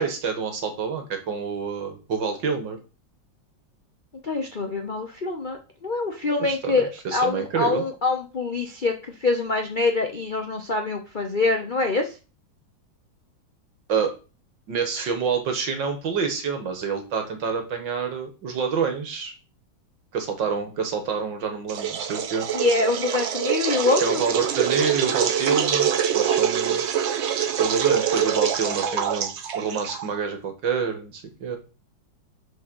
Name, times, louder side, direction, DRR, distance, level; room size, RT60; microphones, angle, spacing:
voice 1, 0.0-2.8 6.4-7.9 13.9-14.1 14.7-19.3 20.1-22.5 24.0-26.9 27.6-31.6, right 6 dB, 65° right, 6 dB, 2.1 m, -27 dB
voice 2, 4.2-12.1 22.5-24.2 28.8-29.1, left 3 dB, 45° left, 4 dB, 0.6 m, -25 dB
sound 1, 21.7-30.2, right 8 dB, 90° right, 0.6 m, -25 dB
6.3 x 4.6 x 6.2 m, 0.33 s
omnidirectional pair, 2.2 m